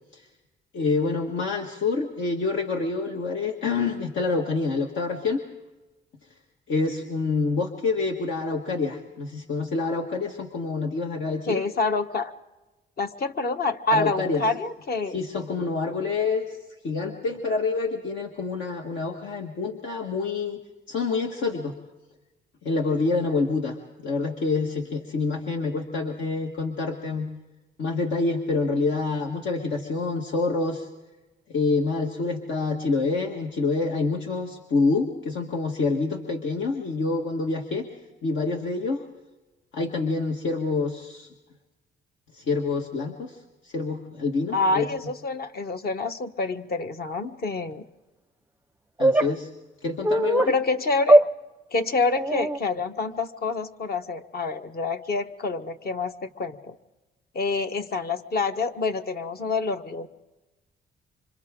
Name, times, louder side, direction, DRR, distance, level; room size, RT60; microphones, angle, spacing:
voice 1, 0.7-5.4 6.7-11.6 13.9-14.4 15.1-16.6 16.8-20.6 20.9-21.7 22.6-23.8 24.0-27.3 27.8-30.9 31.5-37.9 38.2-39.1 39.7-41.3 42.4-43.4 43.6-44.9 49.0-49.5 49.8-50.5, left 3 dB, 75° left, 2 dB, 1.8 m, -27 dB
voice 2, 11.5-12.3 13.0-15.2 44.5-47.9 50.5-51.2 51.7-56.8 57.3-60.1, left 3 dB, 50° left, 7 dB, 1.3 m, -27 dB
sound 1, 49.0-49.3 50.0-50.5 51.1-51.3 52.2-52.6, right 1 dB, 10° right, 0.6 m, -19 dB
28.0 x 25.5 x 3.8 m, 1.1 s
cardioid pair, 95°, 20 cm